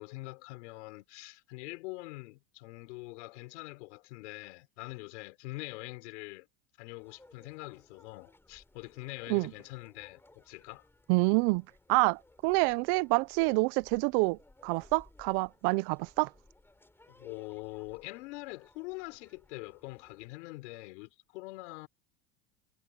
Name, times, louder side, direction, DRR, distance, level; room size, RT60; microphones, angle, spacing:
voice 1, 0.0-6.5 6.8-10.9 17.1-21.9, left 23 dB, 80° left, 4.4 m, -44 dB
sound 1, 7.0-20.3, left 2 dB, 5° left, 6.5 m, -62 dB
voice 2, 11.1-16.3, right 27 dB, 60° right, 0.7 m, -27 dB
supercardioid pair, 135°, 34 cm